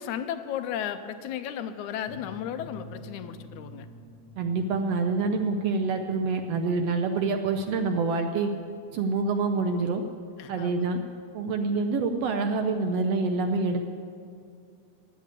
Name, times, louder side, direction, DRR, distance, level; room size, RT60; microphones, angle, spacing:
voice 1, 0.0-3.9 10.4-10.8, left 9 dB, 80° left, 10 dB, 2.1 m, -34 dB
sound 1, 2.1-11.5, left 1 dB, 65° left, 1.5 m, -49 dB
voice 2, 4.4-8.5 8.9-10.0 10.5-11.0 11.3-13.9, right 4 dB, 75° right, 6 dB, 1.5 m, -26 dB
15.5 x 10.0 x 8.2 m, 2.3 s
omnidirectional pair, 3.5 m